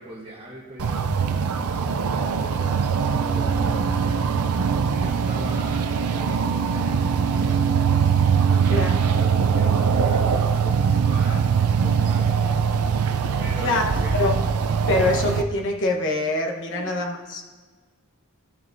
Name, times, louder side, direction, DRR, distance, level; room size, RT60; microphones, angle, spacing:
voice 1, 0.0-7.9 8.4-12.5 13.4-14.2 16.7-16.9, right 1 dB, 25° right, -4 dB, 1.1 m, -41 dB
sound 1, 0.8-15.4, right 6 dB, 75° right, 0.5 m, -22 dB
voice 2, 14.9-17.4, left 2 dB, 60° left, 1 dB, 1.2 m, -24 dB
13.5 x 6.9 x 2.6 m, 1.4 s
head